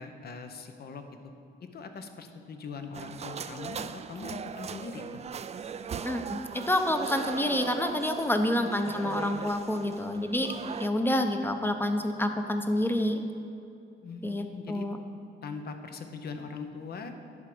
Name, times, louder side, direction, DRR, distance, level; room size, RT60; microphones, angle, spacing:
voice 1, 0.0-1.3 1.6-5.2 8.5-9.5 14.0-14.9 15.4-17.1, left 4 dB, 55° left, 7 dB, 0.9 m, -41 dB
sound 1, 2.9-10.9, right 6 dB, 35° right, 0.4 m, -39 dB
voice 2, 6.0-10.5 10.8-13.2 14.2-15.0, left 1 dB, 10° left, 6 dB, 0.7 m, -28 dB
11.0 x 4.9 x 6.1 m, 2.6 s
cardioid pair, 90°, 20 cm